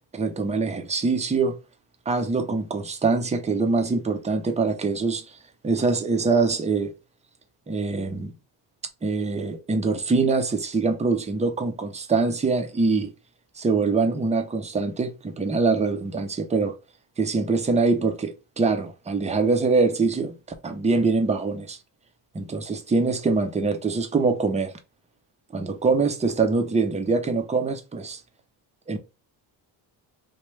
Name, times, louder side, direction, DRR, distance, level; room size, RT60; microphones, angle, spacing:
voice 1, 0.1-1.5 2.1-5.2 5.6-6.9 7.7-8.3 9.0-13.1 13.6-16.7 17.2-20.3 20.6-21.8 22.3-24.7 25.5-28.2 28.9-29.0, right 4 dB, 15° right, 0.5 m, -24 dB
3.1 x 2.2 x 3.1 m
cardioid pair, 110°, 47 cm